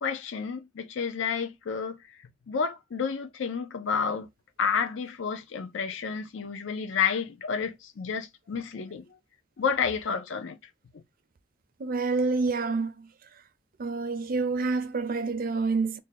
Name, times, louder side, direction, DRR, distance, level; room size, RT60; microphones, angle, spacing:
voice 1, 0.0-2.0 2.5-4.3 4.6-9.0 9.6-10.6, left 6 dB, 70° left, 0.4 m, -30 dB
voice 2, 11.8-13.1 13.8-16.0, right 4 dB, 45° right, 0.5 m, -28 dB
3.3 x 2.2 x 3.9 m
head